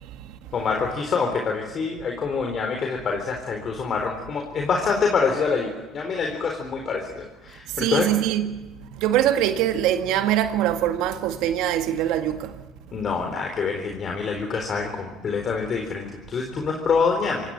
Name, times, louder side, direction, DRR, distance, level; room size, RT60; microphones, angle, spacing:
voice 1, 0.5-8.1 12.9-17.5, left 5 dB, 45° left, 4.0 m, -26 dB
voice 2, 7.8-8.6 9.0-12.5, right 11 dB, 70° right, 1.8 m, -23 dB
25.0 x 18.5 x 7.9 m
supercardioid pair, 80°, 0 cm